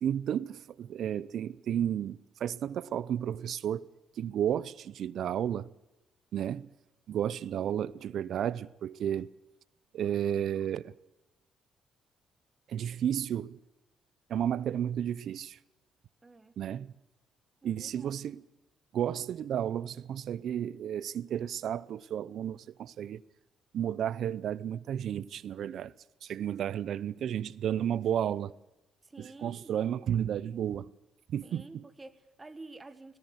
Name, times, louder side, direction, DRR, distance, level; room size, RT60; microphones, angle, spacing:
voice 1, 0.0-3.8 4.2-5.7 6.3-6.7 7.1-9.3 9.9-10.9 12.7-13.6 14.3-15.6 16.6-16.9 17.6-18.4 18.9-23.2 23.7-25.9 26.2-28.5 29.2-30.9 31.3-31.8, right 10 dB, 70° right, 0.6 m, -32 dB
voice 2, 16.2-16.6 17.6-18.3 29.0-29.8 31.4-33.2, right 3 dB, 20° right, 1.5 m, -50 dB
18.5 x 17.5 x 7.9 m
cardioid pair, 90°, 0 cm